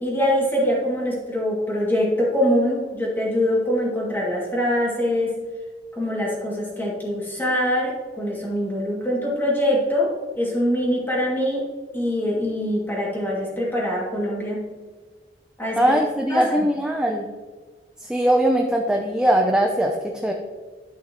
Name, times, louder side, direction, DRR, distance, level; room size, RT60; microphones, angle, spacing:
voice 1, 0.0-5.3 5.9-11.7 11.9-14.6 15.6-15.9 16.3-16.7, equal, 10° left, -5 dB, 2.5 m, -23 dB
voice 2, 15.8-17.3 18.0-20.3, right 1 dB, 5° right, 1 dB, 0.6 m, -21 dB
11.5 x 6.1 x 3.1 m, 1.4 s
head